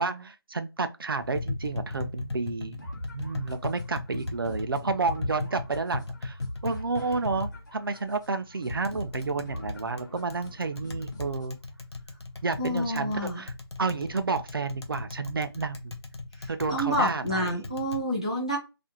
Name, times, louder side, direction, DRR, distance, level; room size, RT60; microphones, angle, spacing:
voice 1, 0.0-2.8 3.1-6.4 6.6-11.6 12.4-13.5 13.8-16.0 16.5-17.6, right 4 dB, 60° right, 0.4 m, -30 dB
Tap, 1.2-18.0, left 3 dB, 85° left, 0.6 m, -38 dB
sound 1, 2.8-11.8, left 1 dB, 45° left, 0.9 m, -42 dB
voice 2, 12.6-13.4 16.4-18.6, equal, 15° left, 0.4 m, -29 dB
2.4 x 2.1 x 2.8 m
figure-of-eight pair, 165°, 13 cm